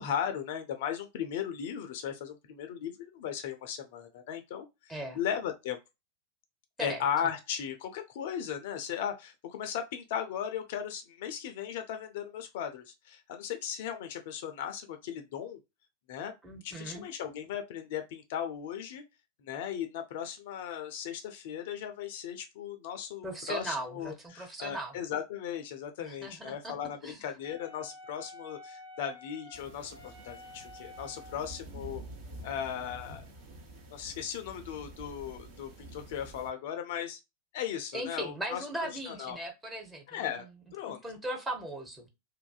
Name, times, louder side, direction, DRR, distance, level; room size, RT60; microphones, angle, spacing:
voice 1, 0.0-5.8 6.8-15.6 16.1-16.3 16.6-19.0 19.4-32.0 32.4-33.3 33.9-37.2 37.5-39.4 40.1-40.5 40.7-41.0, left 9 dB, 50° left, 0.4 m, -37 dB
voice 2, 16.4-17.0 23.2-24.9 26.0-26.7 27.0-27.2 37.9-40.5 40.9-42.1, right 1 dB, 10° right, 0.8 m, -38 dB
Wind instrument woodwind instrument, 27.4-31.6, left 2 dB, 80° right, 0.9 m, -50 dB
sound 1, 29.5-36.5, right 1 dB, 50° right, 0.9 m, -48 dB
2.6 x 2.4 x 2.3 m
figure-of-eight pair, 90°, 0 cm